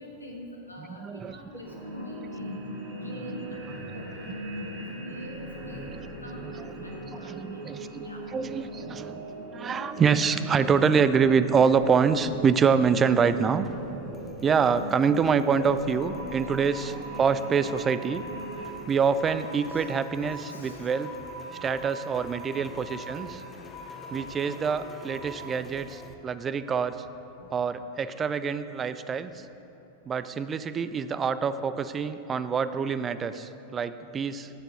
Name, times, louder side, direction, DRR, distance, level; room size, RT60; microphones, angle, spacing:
voice 1, 0.0-2.6 3.0-4.3 4.7-8.2 16.8-17.0 19.7-19.9 20.2-20.9 22.8-22.9, left 1 dB, 80° left, 0 dB, 1.3 m, -45 dB
voice 2, 0.8-1.4 6.4-6.7 7.1-9.3 9.5-13.7 14.4-18.2 18.9-21.1 21.6-23.4 24.1-27.0 27.5-29.4 30.1-34.5, right 6 dB, 20° right, 13 dB, 0.3 m, -26 dB
sound 1, 1.6-18.7, right 1 dB, 45° right, 1.5 m, -39 dB
sound 2, 10.1-26.1, left 3 dB, 15° left, 0.7 m, -50 dB
sound 3, 15.8-25.4, right 1 dB, 40° left, 1.6 m, -43 dB
11.5 x 6.8 x 4.1 m, 2.9 s
figure-of-eight pair, 90°, 0 cm